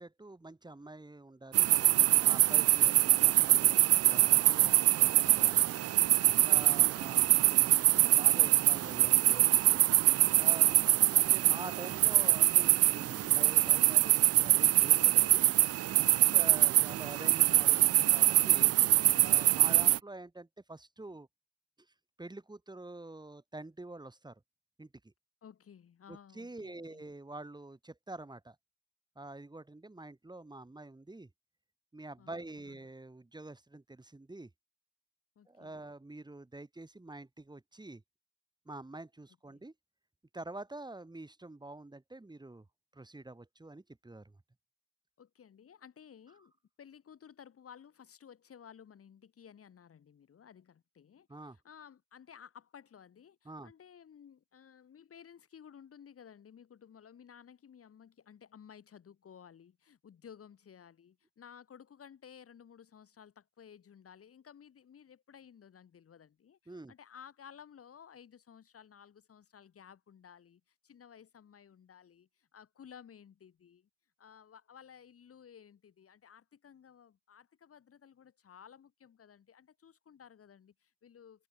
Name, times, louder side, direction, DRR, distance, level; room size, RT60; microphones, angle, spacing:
voice 1, 0.0-1.7 2.2-5.6 6.5-9.8 10.4-15.4 15.9-16.1 16.3-18.7 19.2-21.3 22.2-24.4 24.8-25.1 26.1-28.6 29.1-31.3 31.9-34.5 35.5-38.0 38.6-39.7 40.3-42.6 42.9-44.4 51.3-51.6 53.4-53.7 66.7-66.9, right 2 dB, 15° right, 3.1 m, -47 dB
sound 1, 1.5-20.0, right 14 dB, 55° right, 0.4 m, -24 dB
voice 2, 6.4-7.1 16.1-16.8 25.4-27.0 32.2-32.8 35.4-35.9 39.5-39.6 45.2-46.5 46.8-73.9 74.2-81.5, left 8 dB, 50° left, 2.4 m, -56 dB
cardioid pair, 90°, 30 cm